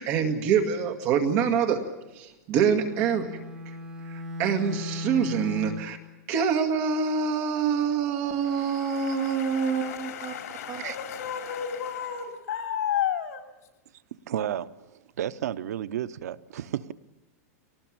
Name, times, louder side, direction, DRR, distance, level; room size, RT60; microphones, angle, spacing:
voice 1, 0.0-1.8 2.2-3.3 4.1-6.0 6.3-10.3 10.7-10.8, right 6 dB, 30° right, 6 dB, 2.0 m, -25 dB
Bowed string instrument, 2.6-6.0, left 1 dB, 10° right, 2.6 m, -37 dB
voice 2, 8.2-13.5, left 9 dB, 80° left, 4 dB, 3.4 m, -33 dB
voice 3, 14.3-14.7 15.2-16.9, right 11 dB, 80° right, 14 dB, 0.8 m, -31 dB
23.5 x 19.0 x 8.8 m, 1.0 s
supercardioid pair, 175°, 9 cm